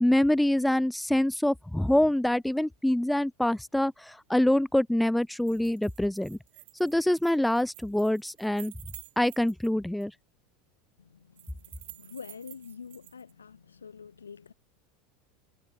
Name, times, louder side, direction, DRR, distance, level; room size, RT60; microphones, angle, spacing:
voice 1, 0.0-6.4 6.8-8.7 9.2-10.1, left 1 dB, 5° left, 0.3 m, -25 dB
sound 1, 5.2-9.7 10.0-10.1 11.4-13.3, right 22 dB, 65° right, 1.5 m, -50 dB
voice 2, 11.0-14.5, left 6 dB, 85° left, 3.2 m, -46 dB
hypercardioid pair, 80°, 0 cm